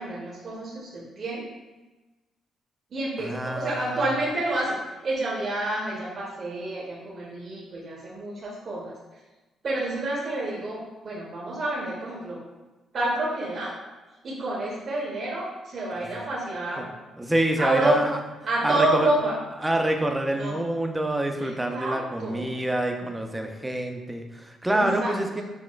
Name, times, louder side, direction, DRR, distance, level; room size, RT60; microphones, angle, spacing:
voice 1, 0.0-1.4 2.9-4.8 5.0-8.9 9.6-12.4 12.9-13.7 14.2-16.9 17.6-18.0 18.4-19.4 20.4-20.6 21.4-22.5 24.7-25.1, right 2 dB, 50° right, -6 dB, 0.8 m, -28 dB
voice 2, 3.2-4.1 16.0-16.1 16.8-16.9 17.2-18.1 18.6-19.1 19.6-25.4, right 1 dB, 10° right, 3 dB, 0.4 m, -27 dB
6.0 x 2.1 x 2.3 m, 1.1 s
cardioid pair, 90°, 0 cm